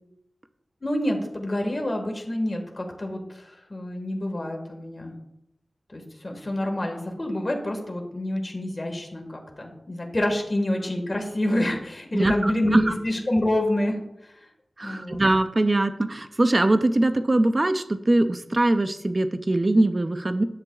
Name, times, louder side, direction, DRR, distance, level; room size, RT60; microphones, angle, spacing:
voice 1, 0.8-5.1 5.9-14.0 14.2-14.3 14.8-15.2, left 1 dB, 35° left, 2 dB, 1.5 m, -27 dB
voice 2, 12.1-12.9 14.8-20.4, right 2 dB, 35° right, 10 dB, 0.4 m, -22 dB
9.9 x 7.7 x 2.3 m, 0.83 s
wide cardioid pair, 75°, 0 cm